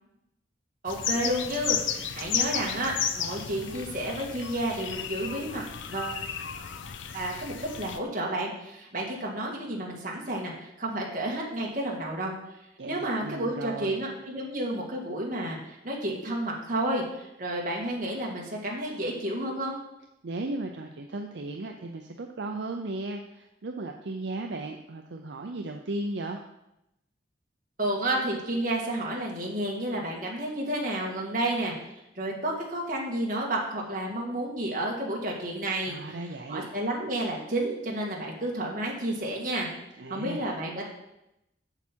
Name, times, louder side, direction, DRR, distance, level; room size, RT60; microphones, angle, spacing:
voice 1, 0.8-6.2 7.1-12.3 12.8-19.8 27.8-31.7 32.2-36.2 36.5-39.7 40.1-40.8, right 1 dB, 45° right, -2 dB, 1.9 m, -31 dB
sound 1, 0.9-8.0, left 8 dB, 80° left, 0.6 m, -33 dB
voice 2, 12.8-14.0 20.2-26.4 35.8-36.7 40.0-40.5, right 2 dB, 65° right, 3 dB, 0.6 m, -36 dB
7.9 x 7.3 x 4.5 m, 0.86 s
head